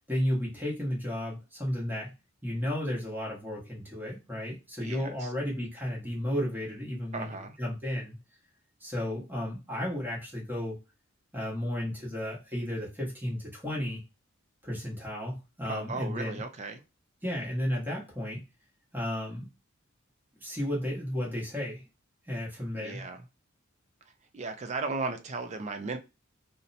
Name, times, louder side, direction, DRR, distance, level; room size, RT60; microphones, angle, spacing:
voice 1, 0.1-2.1 2.4-8.1 8.8-10.8 11.3-14.0 14.6-16.4 17.2-18.4 18.9-19.5 20.4-21.8 22.3-23.1, equal, 10° right, -3 dB, 1.1 m, -33 dB
voice 2, 4.8-5.3 7.1-7.6 15.6-16.8 22.8-23.2 24.3-26.0, right 3 dB, 35° right, 7 dB, 0.4 m, -36 dB
2.7 x 2.1 x 3.9 m, 0.27 s
head